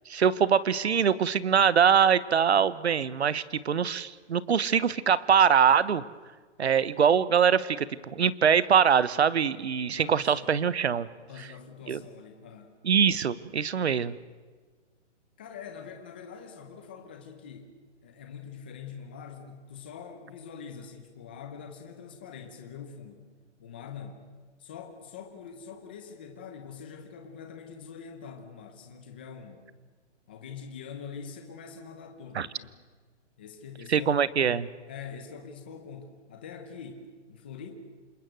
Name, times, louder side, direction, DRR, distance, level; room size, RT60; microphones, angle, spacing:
voice 1, 0.1-6.0 6.6-11.1 11.9-12.0 12.8-14.1 32.3-32.5 33.9-34.7, right 7 dB, 60° right, 18 dB, 1.3 m, -23 dB
voice 2, 9.9-10.5 11.3-12.8 15.4-17.7 18.0-23.3 23.6-24.2 24.6-29.7 30.3-32.7 33.4-34.1 34.9-37.7, left 6 dB, 10° left, 5 dB, 0.8 m, -44 dB
27.5 x 22.0 x 7.8 m, 1.4 s
hypercardioid pair, 180°, 36 cm